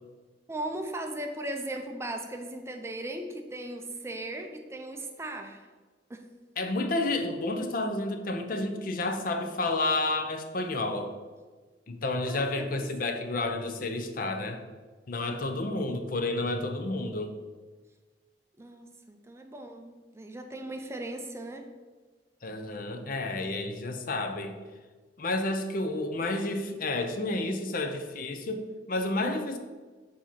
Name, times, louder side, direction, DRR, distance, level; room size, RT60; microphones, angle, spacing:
voice 1, 0.5-5.7 6.1-6.3 12.3-12.9 18.6-21.7, right 1 dB, 15° right, 4 dB, 0.4 m, -38 dB
voice 2, 6.6-11.1 11.9-14.6 15.1-17.3 22.4-24.6 25.2-29.6, left 2 dB, 50° left, 6 dB, 0.6 m, -30 dB
7.2 x 2.8 x 5.8 m, 1.4 s
head